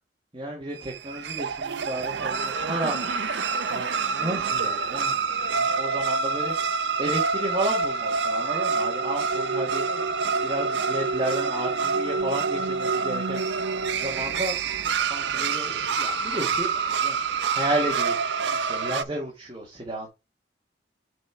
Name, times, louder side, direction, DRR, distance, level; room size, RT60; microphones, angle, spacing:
voice 1, 0.3-3.4 3.7-5.3 5.5-13.4 13.9-14.6 14.9-17.2 17.4-18.2 18.4-20.1, right 1 dB, 25° right, 1.6 m, -32 dB
sound 1, 0.8-19.0, right 5 dB, 70° right, 0.5 m, -27 dB
6.2 x 4.3 x 4.5 m
head